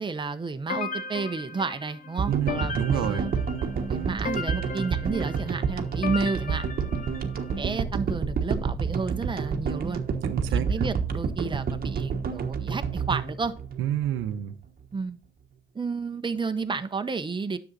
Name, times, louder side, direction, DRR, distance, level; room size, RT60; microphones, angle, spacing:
voice 1, 0.0-3.3 3.9-7.0 7.6-10.0 10.5-13.5 14.9-15.2 15.7-17.6, right 4 dB, 25° right, 9 dB, 1.0 m, -31 dB
sound 1, 0.7-7.6, left 5 dB, 40° left, 0.9 m, -36 dB
sound 2, 2.2-14.5, right 6 dB, 50° right, 1.3 m, -29 dB
voice 2, 2.3-3.3 10.2-10.6 13.8-14.5, right 11 dB, 85° right, 11 dB, 1.0 m, -28 dB
9.9 x 7.2 x 4.0 m, 0.37 s
cardioid pair, 90°, 20 cm